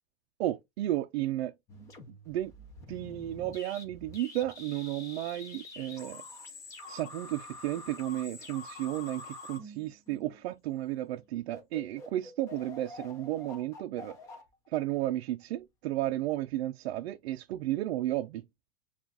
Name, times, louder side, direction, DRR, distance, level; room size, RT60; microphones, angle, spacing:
voice 1, 0.4-1.5 2.1-2.5 2.9-6.2 6.9-14.2 14.7-18.5, right 14 dB, 85° right, 0.5 m, -33 dB
sound 1, 1.7-10.5 11.1-11.2 11.5-15.4, left 2 dB, 10° left, 0.5 m, -47 dB
7.0 x 2.4 x 2.5 m
supercardioid pair, 175°, 31 cm